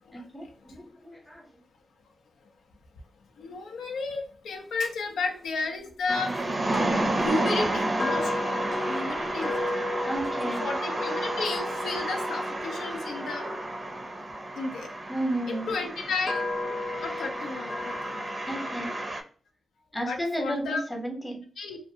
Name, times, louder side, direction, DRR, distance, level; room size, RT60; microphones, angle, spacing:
voice 1, 0.1-1.6 10.0-10.7 15.1-15.7 18.5-18.9 19.9-21.4, right 1 dB, 10° left, 2 dB, 0.8 m, -33 dB
voice 2, 3.4-6.3 7.2-8.3 8.8-9.9 10.6-13.4 14.6-14.9 15.5-16.4 17.0-18.2 20.0-20.8 21.6-21.8, left 3 dB, 90° left, 2 dB, 0.5 m, -32 dB
sound 1, 6.1-19.2, right 2 dB, 40° right, 0.5 m, -31 dB
sound 2, 6.7-14.9 15.6-19.1, left 2 dB, 45° left, 0.6 m, -35 dB
2.5 x 2.2 x 2.7 m, 0.43 s
cardioid pair, 65°, 0 cm